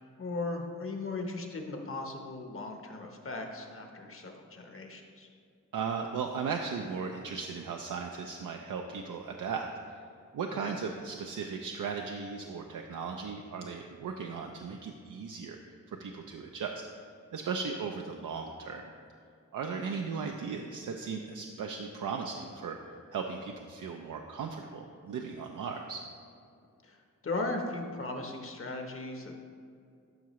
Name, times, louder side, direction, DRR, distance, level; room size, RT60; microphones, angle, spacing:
voice 1, 0.2-5.3 10.6-10.7 26.8-29.4, left 2 dB, 45° left, 3 dB, 0.9 m, -37 dB
voice 2, 5.7-9.7 10.3-15.6 16.0-16.8 17.3-18.8 19.5-22.8 23.1-26.0, right 5 dB, 75° right, 3 dB, 0.5 m, -37 dB
12.0 x 5.8 x 3.1 m, 2.3 s
wide cardioid pair, 135°, 32 cm